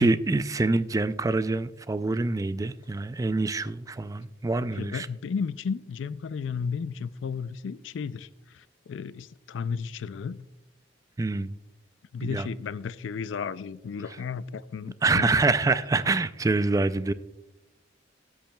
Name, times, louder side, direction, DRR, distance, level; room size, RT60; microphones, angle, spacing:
voice 1, 0.0-5.1 11.2-11.5 12.2-12.5 15.0-17.1, right 3 dB, 20° right, 0.3 m, -25 dB
voice 2, 4.7-8.3 8.5-10.5 12.1-15.3, left 6 dB, 80° left, 0.4 m, -33 dB
14.0 x 8.7 x 2.2 m
head